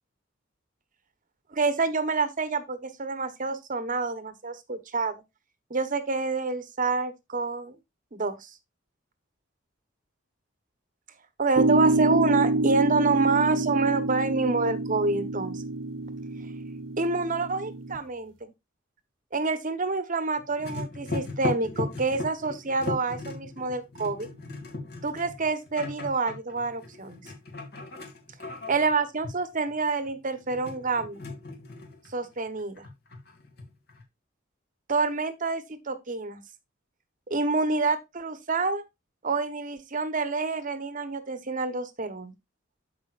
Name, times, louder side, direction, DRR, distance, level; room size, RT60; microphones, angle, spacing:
voice 1, 1.5-5.1 5.7-7.7 8.1-8.5 11.4-15.6 17.0-18.5 19.3-24.3 25.0-27.2 28.4-31.2 32.1-32.9 34.9-36.4 37.3-38.8 39.2-42.3, right 4 dB, 45° right, 1.1 m, -27 dB
sound 1, 11.6-18.0, right 2 dB, 70° right, 1.0 m, -27 dB
sound 2, 20.4-32.3 32.6-34.0, left 3 dB, 55° left, 2.4 m, -37 dB
13.0 x 5.0 x 2.5 m
head